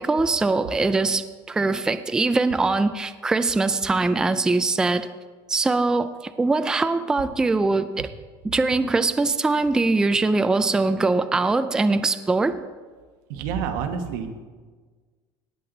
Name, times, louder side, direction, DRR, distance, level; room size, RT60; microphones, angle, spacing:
voice 1, 0.0-5.1 5.5-8.1 8.4-12.6, right 3 dB, 5° right, 11 dB, 0.3 m, -22 dB
voice 2, 13.3-14.3, right 7 dB, 90° right, 5 dB, 1.3 m, -28 dB
18.0 x 7.7 x 3.9 m, 1.5 s
cardioid pair, 160°, 10 cm